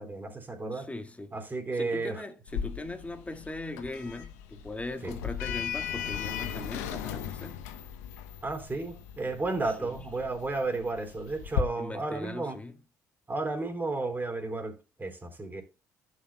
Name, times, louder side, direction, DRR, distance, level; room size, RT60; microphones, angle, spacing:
voice 1, 0.0-0.9 1.3-2.2 5.0-5.1 8.4-12.6 13.3-15.6, right 3 dB, 25° right, 4.0 m, -33 dB
voice 2, 0.7-1.4 1.7-7.7 9.8-10.1 11.8-12.8, left 2 dB, 15° left, 1.8 m, -39 dB
Sliding door, 2.5-11.6, left 8 dB, 85° left, 0.9 m, -37 dB
14.5 x 6.5 x 2.2 m
hypercardioid pair, 50°, 8 cm